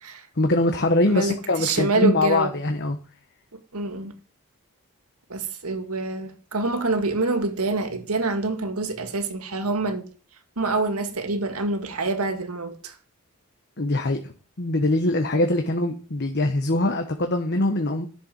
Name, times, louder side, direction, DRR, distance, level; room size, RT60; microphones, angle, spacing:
voice 1, 0.4-3.0 13.8-14.3 14.6-18.1, left 2 dB, 50° left, 1.2 m, -23 dB
voice 2, 1.0-2.5 3.7-4.1 5.3-10.1 10.6-12.9, right 3 dB, 85° right, 1.9 m, -26 dB
11.0 x 6.7 x 7.5 m
head